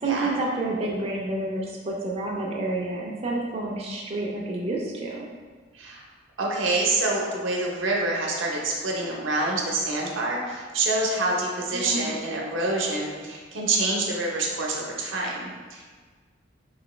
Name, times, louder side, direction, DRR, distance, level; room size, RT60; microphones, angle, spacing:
voice 1, 0.0-5.2 11.7-12.2, right 2 dB, 30° right, -3 dB, 0.3 m, -29 dB
voice 2, 5.7-6.1 6.4-15.9, right 2 dB, 90° right, -2 dB, 0.7 m, -27 dB
3.1 x 2.9 x 3.1 m, 1.5 s
head